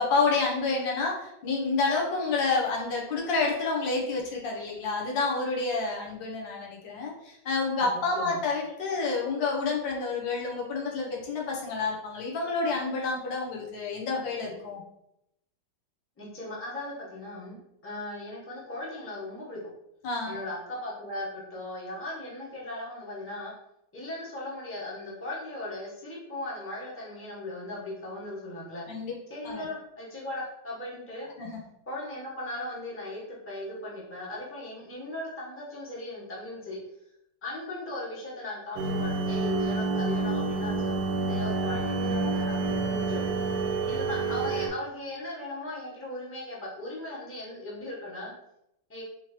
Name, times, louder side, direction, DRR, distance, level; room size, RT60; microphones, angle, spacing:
voice 1, 0.0-14.8 20.0-20.4 28.9-29.1 29.4-29.7 31.4-31.6, left 4 dB, 80° left, -2 dB, 1.6 m, -29 dB
voice 2, 7.8-8.4 16.2-17.6 17.8-19.6 20.2-23.5 23.9-28.9 29.3-31.3 31.9-36.8 37.4-41.0 41.3-43.2 43.9-48.3 48.9-49.0, left 1 dB, 10° left, -6 dB, 0.8 m, -38 dB
sound 1, 38.8-44.7, right 3 dB, 90° right, 1.3 m, -28 dB
4.3 x 2.9 x 3.0 m, 0.83 s
omnidirectional pair, 2.0 m